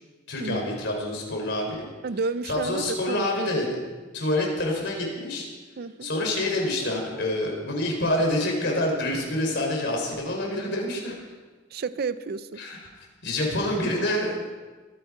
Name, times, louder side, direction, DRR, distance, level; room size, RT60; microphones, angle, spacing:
voice 1, 0.3-1.9 2.5-3.7 4.1-5.5 6.0-11.2 12.6-14.4, left 1 dB, 60° left, 0 dB, 3.9 m, -27 dB
voice 2, 2.0-3.3 5.8-6.1 11.7-12.6, right 4 dB, 55° right, 14 dB, 0.5 m, -31 dB
23.5 x 8.8 x 4.8 m, 1.3 s
head